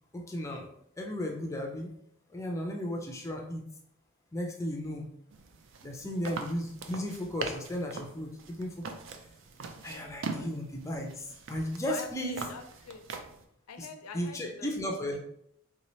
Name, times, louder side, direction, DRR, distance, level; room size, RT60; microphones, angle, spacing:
voice 1, 0.1-0.7 1.0-1.9 2.3-3.6 4.3-5.1 5.8-8.8 9.8-12.4 13.8-13.9 14.1-15.2, equal, 15° left, 1 dB, 0.4 m, -35 dB
sound 1, 5.3-13.4, right 4 dB, 55° right, 0.4 m, -42 dB
voice 2, 9.8-10.5 11.9-13.1 13.7-14.7 15.1-15.2, left 5 dB, 90° left, 7 dB, 0.5 m, -45 dB
3.6 x 2.8 x 3.0 m, 0.72 s
head